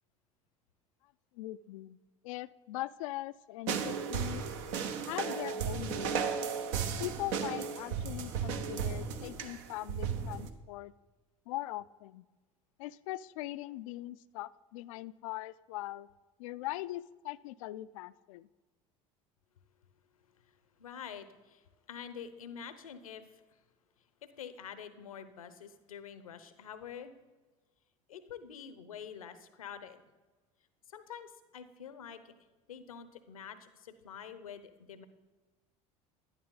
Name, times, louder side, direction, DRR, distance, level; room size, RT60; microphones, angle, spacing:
voice 1, 1.3-2.0 2.2-4.4 5.1-6.3 7.0-10.9 11.5-12.3 12.8-16.1 16.4-18.5, left 16 dB, 70° left, 18 dB, 0.4 m, -41 dB
sound 1, 3.7-10.5, right 6 dB, 70° right, 1.0 m, -35 dB
voice 2, 20.3-23.6 24.2-27.1 28.1-30.0 30.9-32.3 32.7-35.1, left 8 dB, 90° left, 12 dB, 0.8 m, -47 dB
11.5 x 10.5 x 3.9 m, 1.3 s
hypercardioid pair, 70°, 17 cm